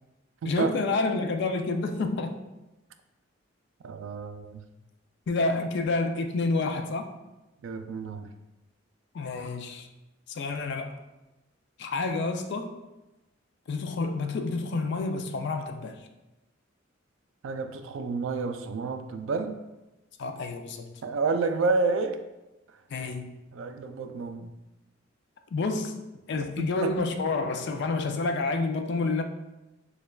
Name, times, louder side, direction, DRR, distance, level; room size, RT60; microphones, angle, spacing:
voice 1, 0.4-2.3 5.3-7.1 9.1-9.9 10.3-11.0 11.8-12.8 13.7-16.0 20.2-20.9 22.9-23.4 25.5-29.2, left 3 dB, 60° left, 6 dB, 0.4 m, -29 dB
voice 2, 3.8-4.7 7.6-8.3 17.4-19.6 21.0-22.2 23.5-24.5 26.4-27.0, right 4 dB, 70° right, 8 dB, 0.3 m, -30 dB
6.5 x 2.3 x 2.3 m, 1.0 s
head